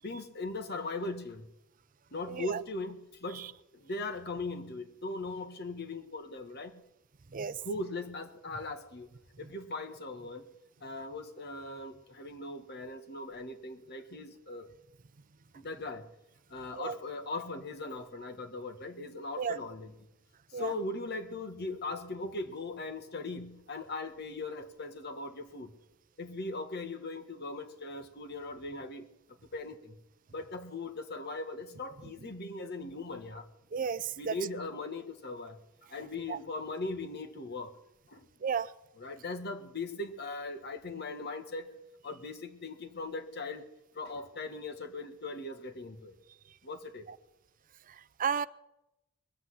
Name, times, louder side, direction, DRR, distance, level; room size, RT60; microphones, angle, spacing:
voice 1, 0.0-1.5 2.1-6.8 7.6-9.1 9.4-10.5 10.8-14.7 15.5-16.1 16.5-19.9 20.5-25.7 26.2-29.1 29.5-30.0 30.3-33.5 34.2-35.6 35.9-37.8 38.1-38.3 39.0-41.7 42.0-46.1 46.6-47.1, left 2 dB, 55° left, 6 dB, 1.8 m, -39 dB
voice 2, 2.3-2.6 3.3-3.5 7.3-7.6 16.7-17.0 19.4-19.6 20.5-20.7 33.7-34.4 36.3-36.4 38.4-38.7 47.9-48.5, right 6 dB, 40° right, 15 dB, 0.5 m, -33 dB
21.5 x 8.3 x 8.1 m, 0.88 s
head